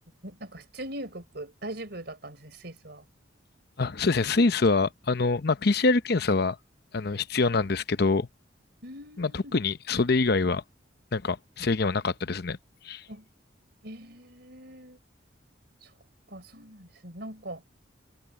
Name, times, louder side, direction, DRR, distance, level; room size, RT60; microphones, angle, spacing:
voice 1, 0.2-3.0 8.8-9.6 13.1-13.2 13.8-15.0 16.3-17.6, right 1 dB, 60° right, 4.3 m, -41 dB
voice 2, 3.8-6.6 6.9-8.3 9.2-10.6 11.1-12.6 12.8-13.0, left 3 dB, 60° left, 0.8 m, -25 dB
head